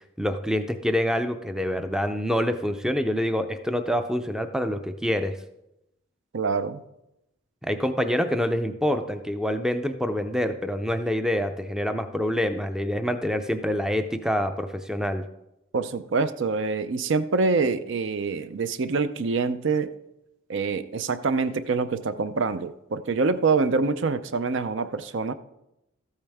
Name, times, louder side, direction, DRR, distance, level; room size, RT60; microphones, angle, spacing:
voice 1, 0.2-5.4 7.6-15.2, equal, 5° right, 8 dB, 0.4 m, -26 dB
voice 2, 6.3-6.8 15.7-19.9 20.5-25.3, right 4 dB, 60° right, 12 dB, 0.5 m, -25 dB
13.5 x 8.7 x 3.5 m, 0.88 s
head